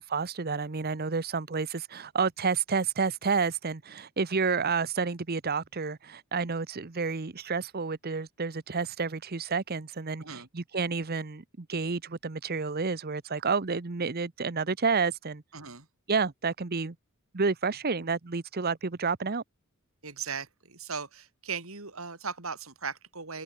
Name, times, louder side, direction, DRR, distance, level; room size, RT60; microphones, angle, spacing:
voice 1, 0.0-15.4 16.1-17.0 17.3-19.4, right 5 dB, 45° right, 0.9 m, -30 dB
voice 2, 15.5-15.9 20.0-23.4, right 5 dB, 75° right, 3.9 m, -38 dB
open air
head